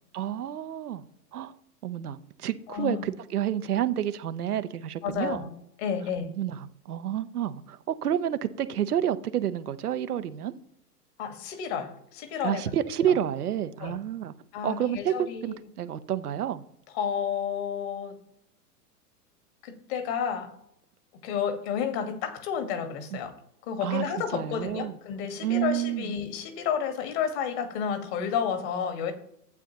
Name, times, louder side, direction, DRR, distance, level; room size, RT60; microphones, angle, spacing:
voice 1, 0.1-1.0 1.3-1.5 1.8-5.4 6.4-6.6 6.9-10.5 12.4-14.3 14.6-15.1 15.4-16.6 23.1-23.2 23.8-24.1 24.3-24.9 25.4-26.0, right 10 dB, 70° right, 0.8 m, -29 dB
voice 2, 2.7-3.1 5.0-5.5 5.8-6.3 11.2-12.7 13.0-13.2 13.8-14.0 14.5-15.6 16.9-18.2 19.6-20.5 21.2-23.4 23.6-29.1, left 7 dB, 40° left, 1.5 m, -31 dB
11.5 x 8.1 x 2.9 m
figure-of-eight pair, 105°, 47 cm